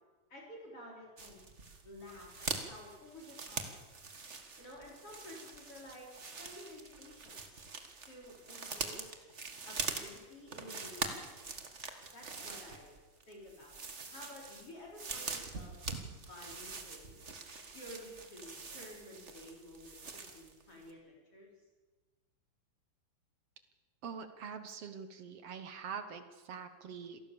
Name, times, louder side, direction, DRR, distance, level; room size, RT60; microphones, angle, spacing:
voice 1, 0.3-1.4 1.8-3.7 4.6-6.1 6.4-7.6 8.1-9.2 9.7-11.4 12.1-13.0 13.3-15.7 16.3-17.3 17.7-21.5, left 1 dB, 40° left, -2 dB, 5.3 m, -52 dB
sound 1, 1.2-20.6 20.9-21.0, right 4 dB, 35° right, 1.2 m, -44 dB
voice 2, 24.0-27.2, right 6 dB, 55° right, 9 dB, 2.0 m, -44 dB
27.5 x 18.0 x 7.1 m, 1.3 s
omnidirectional pair, 4.0 m